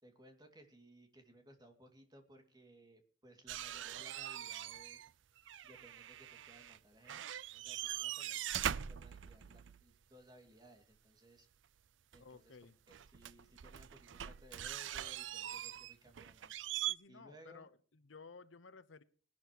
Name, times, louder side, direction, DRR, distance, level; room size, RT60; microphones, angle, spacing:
voice 1, 0.0-5.0 5.6-11.5 12.1-12.6 12.9-16.5 17.1-17.7, right 1 dB, 20° right, 5 dB, 2.4 m, -61 dB
sound 1, 3.5-5.1 5.4-6.8 7.1-9.8 12.1-12.2 12.9-16.9, right 10 dB, 75° right, 0.5 m, -42 dB
voice 2, 12.2-12.8 16.8-19.0, left 4 dB, 90° left, 14 dB, 1.0 m, -56 dB
21.0 x 12.0 x 3.1 m, 0.42 s
head